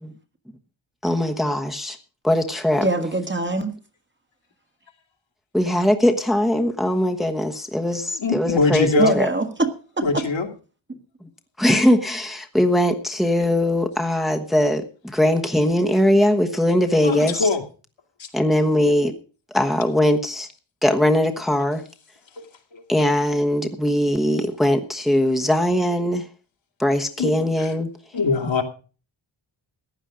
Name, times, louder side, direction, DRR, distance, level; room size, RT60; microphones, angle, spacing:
voice 1, 1.0-2.0 2.2-2.8 5.5-9.3 11.6-17.5 18.3-19.1 19.5-20.5 20.8-21.8 22.9-26.2 26.8-27.9, left 1 dB, ahead, 1.2 m, -20 dB
voice 2, 2.8-3.7 9.0-10.2, right 2 dB, 25° right, 1.6 m, -23 dB
voice 3, 8.2-9.2 10.0-10.5 17.0-17.6 18.2-18.3 22.4-22.5 22.7-22.8 27.2-27.3 27.6-27.7 28.1-28.6, left 3 dB, 70° left, 2.5 m, -22 dB
15.0 x 10.0 x 5.0 m
wide cardioid pair, 125°, 47 cm